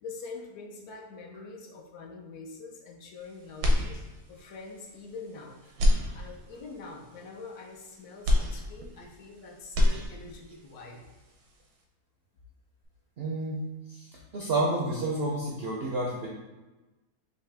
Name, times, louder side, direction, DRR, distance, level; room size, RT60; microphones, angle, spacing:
voice 1, 0.0-4.0 4.3-5.6 6.1-11.0, left 3 dB, 75° left, 1 dB, 1.1 m, -44 dB
sound 1, 3.6-4.5 4.9-5.0 5.7-6.7 8.2-9.3 9.6-10.6, left 1 dB, 85° right, 1.2 m, -26 dB
voice 2, 13.2-13.6 13.9-16.3, right 2 dB, 65° right, -3 dB, 0.6 m, -30 dB
4.0 x 2.8 x 3.4 m, 1.1 s
omnidirectional pair, 1.7 m